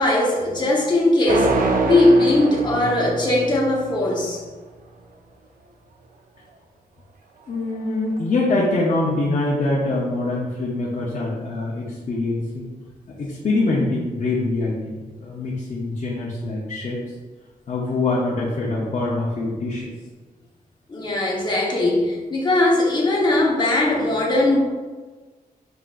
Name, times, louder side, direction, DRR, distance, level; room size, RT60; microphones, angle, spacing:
voice 1, 0.0-1.6 1.8-4.4 20.9-24.6, left 2 dB, 30° left, -4 dB, 1.0 m, -19 dB
sound 1, 1.3-4.2, right 3 dB, 65° right, 0.5 m, -24 dB
voice 2, 7.5-12.7 13.2-17.0 17.7-19.9, left 2 dB, 50° left, -5 dB, 0.7 m, -24 dB
5.7 x 3.8 x 2.5 m, 1.3 s
wide cardioid pair, 150°, 15 cm